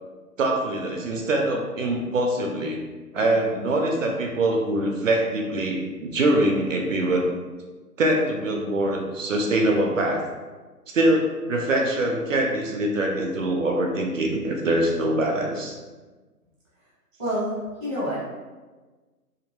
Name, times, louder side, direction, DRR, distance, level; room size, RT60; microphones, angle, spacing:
voice 1, 0.4-2.8 3.1-7.2 8.0-10.2 10.9-15.8, right 1 dB, 55° right, 1 dB, 0.5 m, -23 dB
voice 2, 17.2-18.2, equal, 5° left, -18 dB, 0.5 m, -28 dB
2.6 x 2.4 x 3.0 m, 1.3 s
figure-of-eight pair, 140°, 47 cm